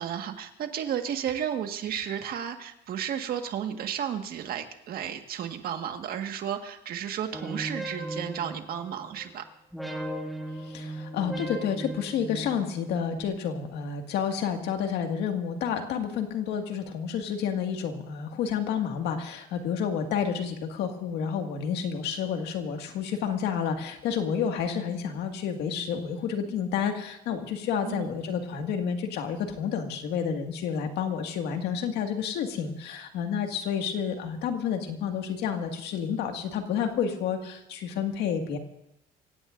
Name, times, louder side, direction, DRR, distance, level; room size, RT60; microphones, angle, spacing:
voice 1, 0.0-9.4 27.8-28.1, right 9 dB, 60° right, 6 dB, 1.7 m, -33 dB
sound 1, 7.3-9.3 9.7-13.2, right 1 dB, ahead, 2.3 m, -37 dB
voice 2, 10.6-38.6, left 7 dB, 80° left, 4 dB, 2.0 m, -30 dB
25.0 x 16.5 x 2.6 m, 0.84 s
cardioid pair, 110°, 17 cm